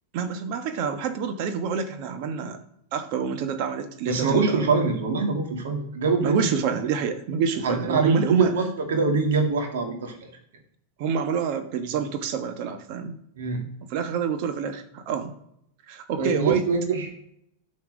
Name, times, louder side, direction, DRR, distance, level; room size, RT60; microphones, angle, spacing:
voice 1, 0.1-2.6 2.9-4.7 6.2-8.5 11.0-13.2 13.9-15.3 15.9-16.7, right 6 dB, 55° right, 8 dB, 1.2 m, -27 dB
voice 2, 4.1-6.5 7.6-10.2 13.4-13.7 16.2-17.1, right 4 dB, 80° right, 3 dB, 2.1 m, -24 dB
9.6 x 4.5 x 6.2 m, 0.75 s
hypercardioid pair, 110°, 0 cm